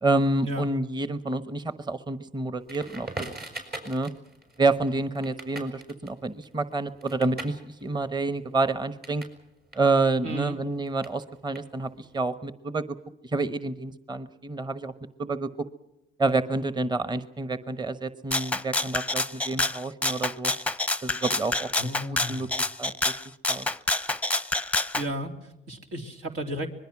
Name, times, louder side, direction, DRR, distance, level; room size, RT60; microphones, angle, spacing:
voice 1, 0.0-3.1 3.8-4.1 4.6-9.2 9.7-12.8 13.3-14.9 15.2-15.5 16.2-20.5 21.0-21.7 22.0-22.5 22.8-23.2 23.5-23.7, right 3 dB, 20° right, 12 dB, 1.2 m, -28 dB
Crackle, 2.7-9.4 9.7-12.1, right 2 dB, 50° right, 6.2 m, -42 dB
voice 2, 10.2-10.6 21.8-22.5 25.0-26.7, right 1 dB, 85° right, 3 dB, 3.5 m, -34 dB
Rattle (instrument), 18.3-25.1, left 2 dB, 5° left, 0.7 m, -27 dB
25.5 x 21.5 x 6.1 m, 0.89 s
cardioid pair, 90°, 20 cm